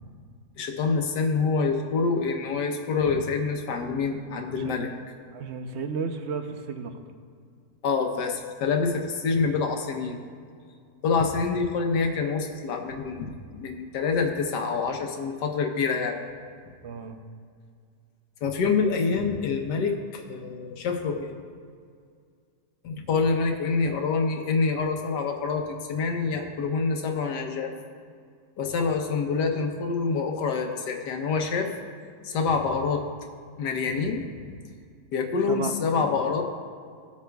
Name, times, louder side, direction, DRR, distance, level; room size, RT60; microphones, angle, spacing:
voice 1, 0.6-4.9 7.8-10.2 11.0-16.2 18.4-21.4 22.8-25.6 25.9-27.7 28.6-31.7 32.2-33.0 33.6-34.5 35.1-36.4, left 4 dB, 80° left, 3 dB, 1.5 m, -26 dB
voice 2, 4.5-4.9 5.3-7.0 16.8-17.2 35.3-36.2, right 5 dB, 60° right, 7 dB, 0.7 m, -34 dB
20.5 x 8.4 x 2.3 m, 2.1 s
omnidirectional pair, 1.8 m